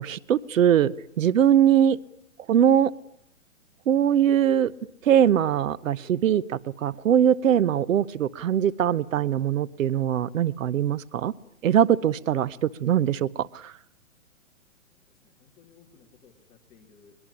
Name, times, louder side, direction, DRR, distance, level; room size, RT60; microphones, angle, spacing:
voice 1, 0.0-2.0 2.5-2.9 3.9-4.7 5.0-11.3 11.6-13.7, right 9 dB, 70° right, 18 dB, 1.1 m, -22 dB
voice 2, 14.9-17.2, left 6 dB, 15° left, 0 dB, 3.1 m, -58 dB
23.5 x 21.5 x 10.0 m, 0.71 s
hypercardioid pair, 160°, 40 cm